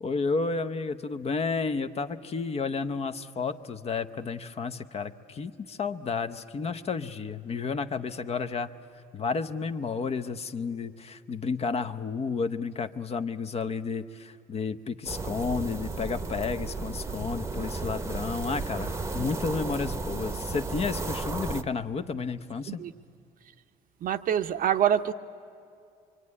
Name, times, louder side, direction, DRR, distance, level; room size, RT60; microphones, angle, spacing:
voice 1, 0.0-8.7 9.1-22.8, left 4 dB, 35° left, 10 dB, 0.8 m, -31 dB
sound 1, 15.1-21.6, right 3 dB, 15° right, 0.9 m, -34 dB
voice 2, 24.0-25.1, right 10 dB, 55° right, 10 dB, 0.8 m, -25 dB
24.5 x 24.0 x 9.7 m, 2.5 s
cardioid pair, 110°, 17 cm